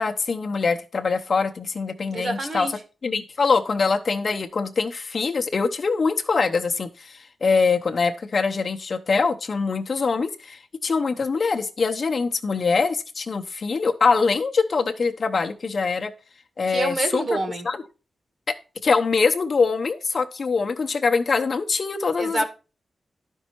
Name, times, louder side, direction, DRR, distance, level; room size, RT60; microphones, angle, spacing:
voice 1, 0.0-2.7 3.0-16.1 16.6-17.2 17.6-17.8 18.8-22.4, left 4 dB, 50° left, 0.8 m, -23 dB
voice 2, 2.1-2.7 16.7-17.7 22.2-22.4, right 2 dB, 45° right, 1.8 m, -27 dB
11.5 x 5.4 x 4.6 m
wide cardioid pair, 160°, 0 cm